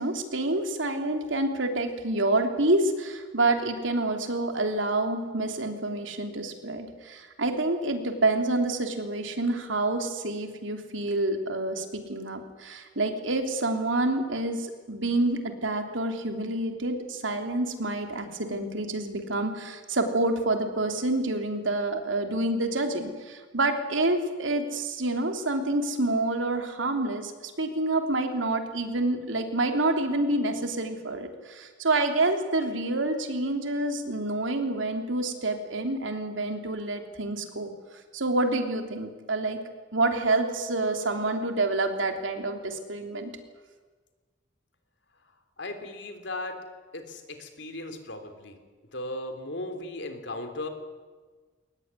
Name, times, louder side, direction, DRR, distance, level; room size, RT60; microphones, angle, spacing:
voice 1, 0.0-37.7 38.1-39.6 39.9-43.3, right 2 dB, 85° right, 5 dB, 3.1 m, -28 dB
voice 2, 45.6-46.6 46.9-48.6 48.9-50.7, left 2 dB, 65° left, 7 dB, 3.4 m, -36 dB
22.0 x 19.5 x 9.7 m, 1.4 s
head